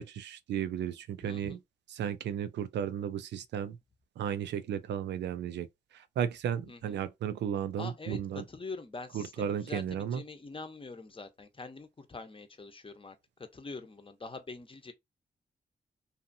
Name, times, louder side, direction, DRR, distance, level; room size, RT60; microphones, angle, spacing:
voice 1, 0.0-1.6 1.9-3.8 4.2-5.7 5.9-8.4 9.1-10.2, right 9 dB, 85° right, 0.4 m, -34 dB
voice 2, 1.2-1.6 6.6-7.0 7.8-8.2 8.5-13.2 13.5-14.9, left 3 dB, 30° left, 0.8 m, -44 dB
2.7 x 2.4 x 2.6 m
cardioid pair, 55°, 18 cm